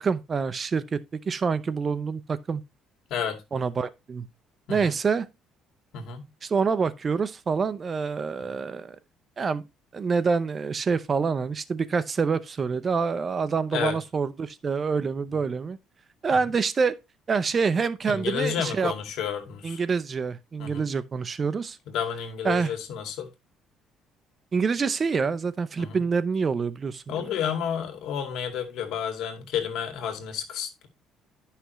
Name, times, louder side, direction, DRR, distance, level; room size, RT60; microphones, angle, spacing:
voice 1, 0.0-2.6 3.5-4.2 4.7-5.3 6.4-9.0 9.4-9.6 9.9-15.8 16.2-17.0 17.3-18.9 19.6-21.8 22.4-22.7 24.5-27.3, right 5 dB, 30° right, 0.6 m, -26 dB
voice 2, 5.9-6.3 13.7-14.0 18.1-19.8 20.6-20.9 21.9-23.3 25.8-26.0 27.1-30.9, left 8 dB, 70° left, 2.1 m, -31 dB
11.0 x 5.7 x 3.1 m
cardioid pair, 125°, 0 cm